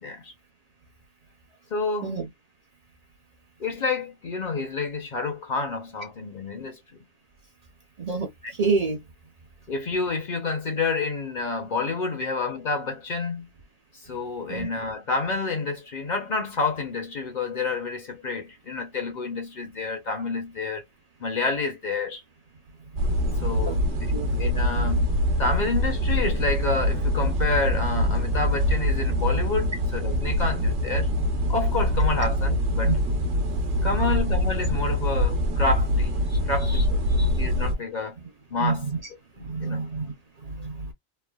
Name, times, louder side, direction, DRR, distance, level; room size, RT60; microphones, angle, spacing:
voice 1, 0.0-0.3 1.7-2.2 3.6-6.8 8.4-8.5 9.7-13.5 14.0-20.8 21.2-22.2 23.4-25.1 25.4-31.1 31.5-33.0 33.8-36.2 36.5-38.2 38.5-38.9 39.4-39.9, left 3 dB, 50° left, 0.8 m, -29 dB
voice 2, 8.0-8.3 8.6-9.0 14.5-14.7 23.7-23.8 24.1-24.4 32.9-33.0 33.7-34.2 36.3-36.4 36.7-36.8 37.2-37.3 38.6-39.0 39.4-40.1 40.4-40.9, right 4 dB, 45° right, 0.7 m, -28 dB
sound 1, 23.0-37.7, equal, 85° right, 1.1 m, -24 dB
3.3 x 2.1 x 2.2 m
omnidirectional pair, 1.1 m